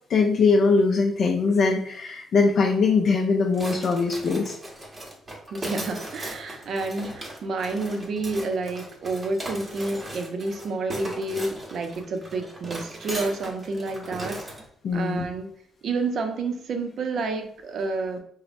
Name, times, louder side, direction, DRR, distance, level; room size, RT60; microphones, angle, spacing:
voice 1, 0.1-4.6 14.8-15.3, left 4 dB, 60° left, 1 dB, 0.3 m, -21 dB
sound 1, 3.5-14.6, right 1 dB, 25° right, 0.8 m, -38 dB
voice 2, 5.5-14.6 14.9-15.5 15.8-18.2, right 3 dB, 65° right, 5 dB, 0.5 m, -29 dB
3.1 x 2.0 x 2.5 m, 0.65 s
cardioid pair, 90°, 0 cm